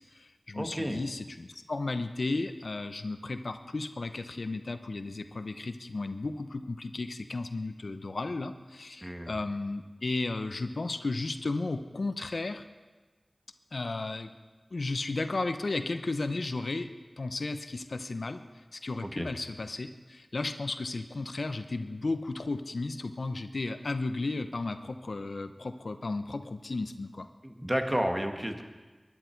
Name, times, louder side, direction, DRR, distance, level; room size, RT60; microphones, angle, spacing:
voice 1, 0.0-12.6 13.7-14.3 14.7-16.9 17.2-18.4 18.7-27.3, left 3 dB, 85° left, 9 dB, 0.7 m, -34 dB
voice 2, 0.5-1.0 9.0-9.4 19.0-19.3 27.4-28.6, equal, 20° right, 4 dB, 1.6 m, -31 dB
21.5 x 10.5 x 4.6 m, 1.3 s
wide cardioid pair, 45°, 0 cm